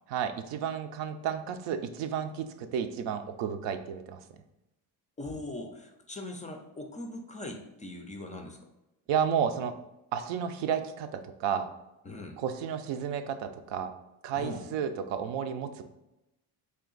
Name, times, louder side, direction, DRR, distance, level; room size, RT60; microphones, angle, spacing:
voice 1, 0.1-4.2 9.1-9.8 10.1-11.7 12.4-13.9 14.2-15.8, right 8 dB, 75° right, 9 dB, 0.5 m, -32 dB
voice 2, 5.2-8.6 12.0-12.4 14.4-14.7, left 2 dB, 20° left, 3 dB, 0.3 m, -40 dB
3.3 x 2.8 x 3.8 m, 0.93 s
cardioid pair, 100°, 43 cm